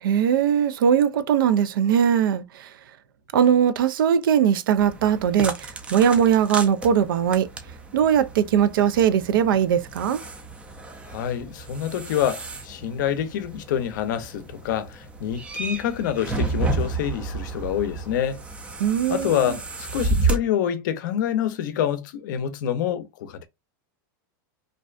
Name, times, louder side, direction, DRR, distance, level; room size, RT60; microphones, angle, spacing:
voice 1, 0.0-2.7 3.3-7.5 7.9-10.2 18.8-19.5, right 8 dB, 90° right, 0.4 m, -20 dB
sound 1, 4.8-20.4, right 3 dB, 10° right, 0.4 m, -32 dB
voice 2, 11.1-18.4 19.1-23.5, left 10 dB, 65° left, 0.5 m, -27 dB
2.5 x 2.1 x 2.3 m
supercardioid pair, 155°, 11 cm